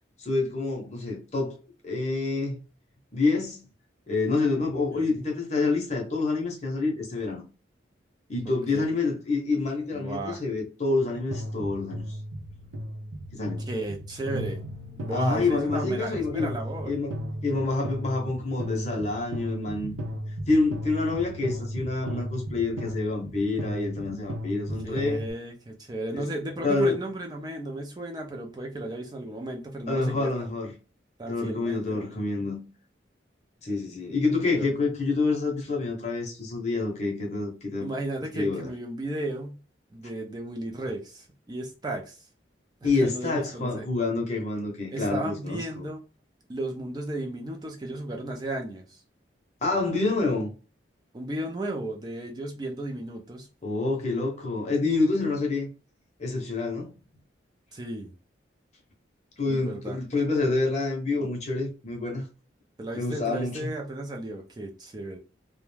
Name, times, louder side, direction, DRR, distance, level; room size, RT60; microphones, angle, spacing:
voice 1, 0.2-1.6 1.8-2.6 3.1-3.7 4.1-7.4 8.3-12.0 13.3-13.7 15.1-16.5 16.8-19.9 20.5-25.2 26.1-26.3 26.6-27.0 29.9-30.7 31.3-32.6 33.6-37.9 38.2-38.7 42.8-45.8 49.6-50.5 53.6-55.7 56.2-57.0 59.4-62.2 62.9-63.7, left 3 dB, 35° left, 0.7 m, -27 dB
voice 2, 4.9-5.3 8.5-8.8 9.9-10.4 13.7-14.6 15.0-16.9 24.8-30.5 31.2-32.2 34.6-34.7 37.8-39.6 39.9-42.2 42.8-43.9 44.9-46.0 46.5-49.0 51.1-53.5 57.7-58.1 59.5-60.0 62.8-65.2, right 1 dB, 20° right, 0.4 m, -34 dB
sound 1, 11.3-25.3, equal, 85° right, 0.5 m, -36 dB
2.3 x 2.1 x 3.1 m
head